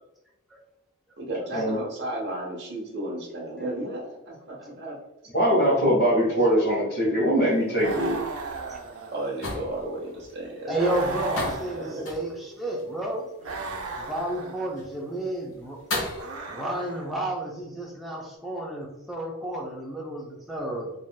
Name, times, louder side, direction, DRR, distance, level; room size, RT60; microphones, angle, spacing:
voice 1, 1.2-5.0 9.1-10.8 11.7-12.0, right 1 dB, 50° right, -2 dB, 0.9 m, -33 dB
voice 2, 5.3-8.2, equal, 45° left, -8 dB, 1.0 m, -22 dB
sound 1, 7.5-16.2, left 1 dB, 80° left, 0.9 m, -38 dB
sound 2, 7.8-9.6 10.7-12.3 13.4-14.8 16.1-17.2, right 3 dB, 85° right, 0.5 m, -36 dB
voice 3, 10.7-13.3 14.0-15.8 16.5-20.9, right 1 dB, ahead, -3 dB, 0.5 m, -31 dB
3.4 x 2.6 x 2.2 m, 0.95 s
head